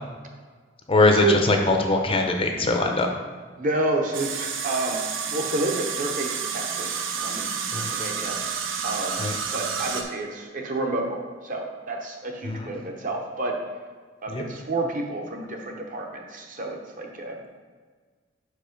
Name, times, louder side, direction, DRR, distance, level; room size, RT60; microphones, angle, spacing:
voice 1, 0.9-3.1 7.7-7.9 9.2-9.3 12.4-12.7 14.3-14.4, left 2 dB, 30° left, 3 dB, 0.6 m, -21 dB
voice 2, 3.6-5.0 5.3-8.4 8.8-9.3 9.5-13.5 14.2-17.4, right 2 dB, 45° right, 2 dB, 0.9 m, -29 dB
sound 1, 4.1-10.0, right 6 dB, 85° right, 0.6 m, -30 dB
5.2 x 5.0 x 5.2 m, 1.5 s
head